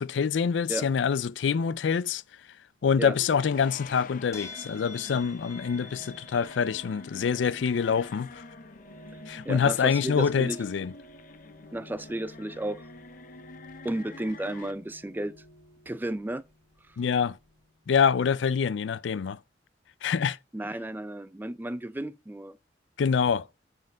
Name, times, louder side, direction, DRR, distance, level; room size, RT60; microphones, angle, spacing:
voice 1, 0.0-2.2 2.8-8.4 9.3-10.9 17.0-17.4 17.9-19.4 20.0-20.4 23.0-23.5, left 6 dB, 90° left, 0.4 m, -26 dB
sound 1, 2.9-14.7, left 4 dB, 50° left, 0.6 m, -47 dB
sound 2, 4.3-17.8, left 1 dB, 20° left, 3.1 m, -49 dB
voice 2, 9.5-10.6 11.7-12.8 13.8-15.4 15.9-16.4 20.5-22.6, right 1 dB, 10° right, 0.4 m, -33 dB
9.5 x 4.5 x 5.1 m
head